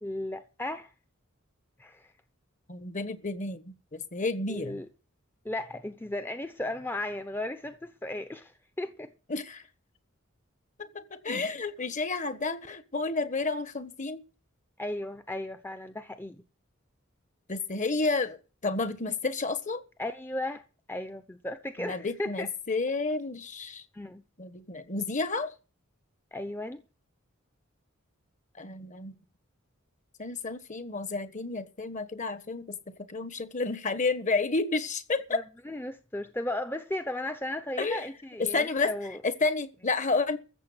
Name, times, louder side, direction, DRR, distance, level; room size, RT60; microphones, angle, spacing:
voice 1, 0.0-0.9 1.8-2.1 4.5-4.9 5.4-8.5 8.8-9.1 14.8-16.4 20.0-22.5 23.9-24.2 26.3-26.8 35.3-39.2, left 1 dB, 10° left, 0.8 m, -35 dB
voice 2, 2.7-4.8 9.3-9.6 10.8-14.2 17.5-19.8 21.8-23.8 24.4-25.5 28.6-29.2 30.2-35.4 37.8-38.1 38.4-38.9 39.2-40.4, left 3 dB, 35° left, 1.4 m, -31 dB
14.5 x 7.5 x 8.0 m
head